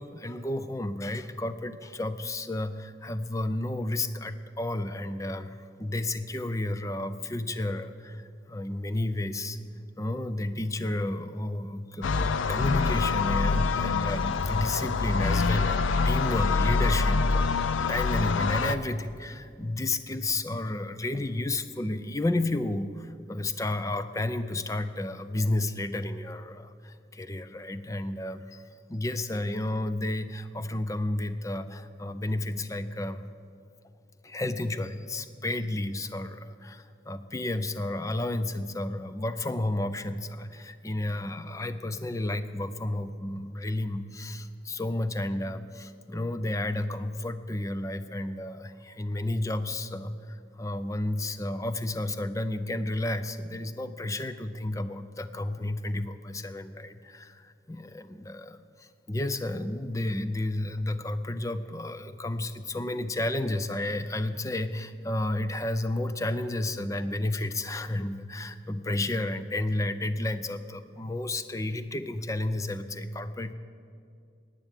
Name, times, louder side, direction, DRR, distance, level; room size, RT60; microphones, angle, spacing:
voice 1, 0.0-9.6 10.0-33.2 34.2-73.5, left 1 dB, 15° left, 11 dB, 0.4 m, -32 dB
sound 1, 12.0-18.7, left 4 dB, 85° left, 0.5 m, -25 dB
10.5 x 9.1 x 9.1 m, 2.4 s
head